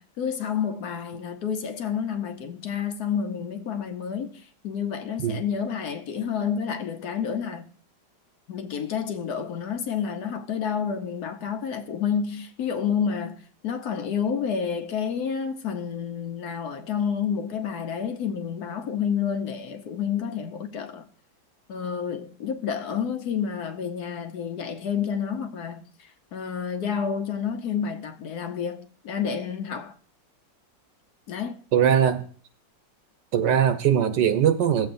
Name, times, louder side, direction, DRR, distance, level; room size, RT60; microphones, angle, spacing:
voice 1, 0.0-7.7 8.5-21.1 21.7-30.0 31.3-31.6, left 7 dB, 65° left, 1.2 m, -29 dB
voice 2, 31.7-32.2 33.3-34.9, right 9 dB, 75° right, 1.5 m, -21 dB
16.5 x 7.6 x 2.6 m
omnidirectional pair, 1.9 m